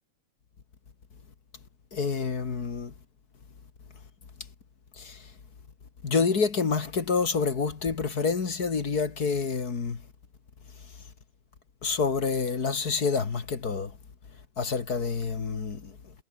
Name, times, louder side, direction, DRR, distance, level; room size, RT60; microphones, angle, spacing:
voice 1, 1.9-2.9 4.9-5.3 6.0-10.0 11.8-14.0 14.6-16.1, left 5 dB, 35° left, 2.2 m, -28 dB
omnidirectional pair, 3.3 m